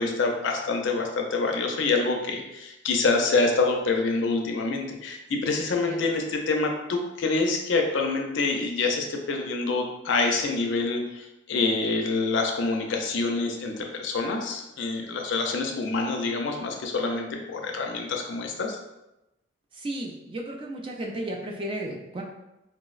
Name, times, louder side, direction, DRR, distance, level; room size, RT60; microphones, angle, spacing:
voice 1, 0.0-18.8, left 3 dB, 60° left, 2 dB, 0.4 m, -26 dB
voice 2, 19.7-22.2, right 1 dB, 25° right, 0 dB, 0.3 m, -34 dB
4.5 x 2.0 x 2.3 m, 0.93 s
head